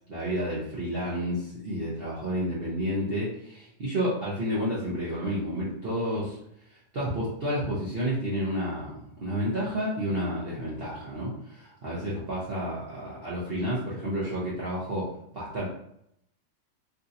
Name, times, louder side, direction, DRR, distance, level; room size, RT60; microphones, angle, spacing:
voice 1, 0.1-6.4 6.9-15.6, equal, 55° right, -7 dB, 0.7 m, -30 dB
3.4 x 2.7 x 2.6 m, 0.74 s
omnidirectional pair, 2.0 m